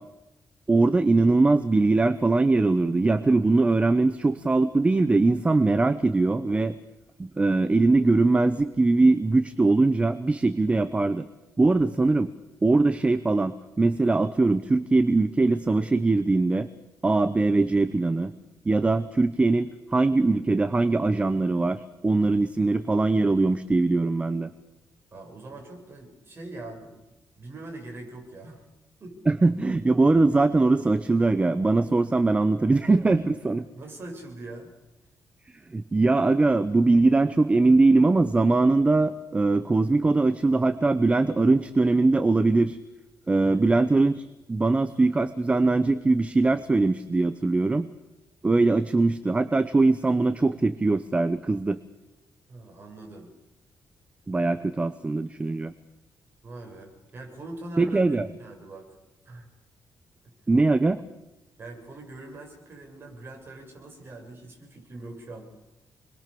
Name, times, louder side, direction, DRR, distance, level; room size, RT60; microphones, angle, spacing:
voice 1, 0.7-6.8 7.2-11.3 11.6-12.3 12.6-16.7 17.0-18.3 18.6-24.5 29.3-33.6 35.7-42.8 43.3-44.2 44.5-47.9 48.4-51.8 54.3-55.7 57.8-58.3 60.5-61.0, right 3 dB, 15° right, 12 dB, 0.9 m, -21 dB
voice 2, 25.1-27.0 27.3-28.6 29.0-29.2 33.7-34.7 43.4-43.8 52.5-53.3 56.4-58.9 59.3-59.5 60.2-60.3 61.6-65.5, right 2 dB, 30° right, 1 dB, 7.4 m, -42 dB
29.0 x 22.0 x 6.9 m, 0.98 s
wide cardioid pair, 165°, 7 cm